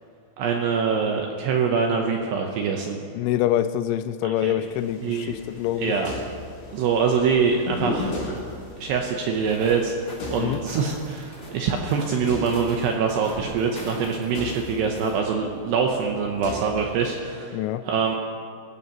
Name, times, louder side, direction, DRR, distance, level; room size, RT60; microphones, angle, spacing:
voice 1, 0.4-3.0 4.2-4.5 5.0-5.4 5.8-6.1 6.7-8.2 8.8-9.9 10.3-17.6 17.9-18.2, right 6 dB, 80° right, 2 dB, 2.5 m, -24 dB
voice 2, 3.1-6.0 10.4-10.6 17.5-17.8, left 12 dB, 85° left, 12 dB, 3.0 m, -25 dB
sound 1, 4.7-10.1, left 1 dB, 50° left, 6.6 m, -36 dB
sound 2, 5.3-17.2, left 3 dB, 65° left, 4.9 m, -41 dB
sound 3, 9.3-15.2, left 1 dB, 20° left, 1.7 m, -41 dB
22.0 x 15.5 x 3.0 m, 2.3 s
omnidirectional pair, 5.8 m